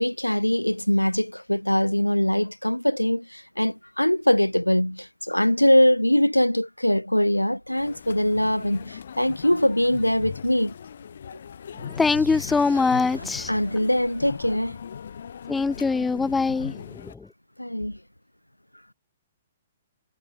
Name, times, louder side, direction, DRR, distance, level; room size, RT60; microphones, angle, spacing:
voice 1, 0.0-10.7 13.5-14.8 17.6-18.0, left 1 dB, 90° left, 1.1 m, -22 dB
sound 1, 7.8-17.1, left 7 dB, 55° left, 2.0 m, -39 dB
voice 2, 11.8-13.5 15.5-17.3, left 4 dB, 10° left, 0.7 m, -23 dB
sound 2, 11.8-14.6, right 1 dB, 90° right, 4.8 m, -45 dB
figure-of-eight pair, 120°, 0 cm